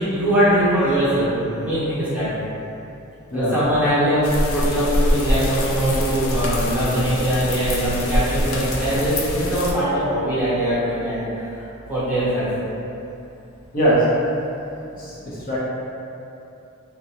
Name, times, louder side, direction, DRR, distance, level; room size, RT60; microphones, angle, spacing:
voice 1, 0.0-2.3 3.3-12.5, equal, 5° right, -13 dB, 0.9 m, -21 dB
sound 1, 4.2-9.7, left 1 dB, 75° left, 0.4 m, -24 dB
voice 2, 13.7-14.1 15.0-15.6, right 1 dB, 45° left, -9 dB, 0.7 m, -21 dB
2.4 x 2.2 x 2.8 m, 2.7 s
head